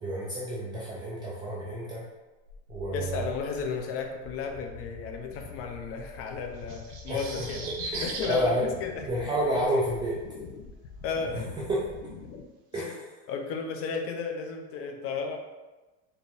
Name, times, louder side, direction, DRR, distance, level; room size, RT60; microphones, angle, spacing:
voice 1, 0.0-2.0 2.7-3.3 5.3-5.4 7.1-7.5 7.9-8.7 9.0-10.2 11.3-11.8 12.7-13.2, right 1 dB, 15° right, -7 dB, 0.3 m, -30 dB
sound 1, 2.5-12.4, left 4 dB, 80° left, 0.7 m, -46 dB
voice 2, 2.9-9.1 11.0-11.5 12.8-12.9 13.3-15.4, left 5 dB, 40° left, 3 dB, 0.6 m, -34 dB
sound 2, 6.6-8.4 9.8-9.9, right 3 dB, 50° right, 0.8 m, -37 dB
4.5 x 2.5 x 3.4 m, 1.1 s
supercardioid pair, 150°, 37 cm